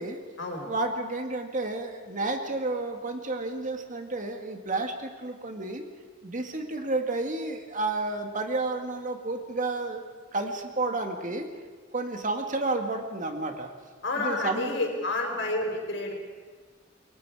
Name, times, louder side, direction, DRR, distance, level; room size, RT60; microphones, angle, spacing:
voice 1, 0.6-5.8 6.2-10.0 10.3-11.5 11.9-13.7 14.2-14.8, right 2 dB, 40° right, 5 dB, 2.0 m, -31 dB
voice 2, 14.0-16.1, left 2 dB, 65° left, 1 dB, 5.1 m, -29 dB
27.5 x 22.5 x 4.9 m, 1.5 s
head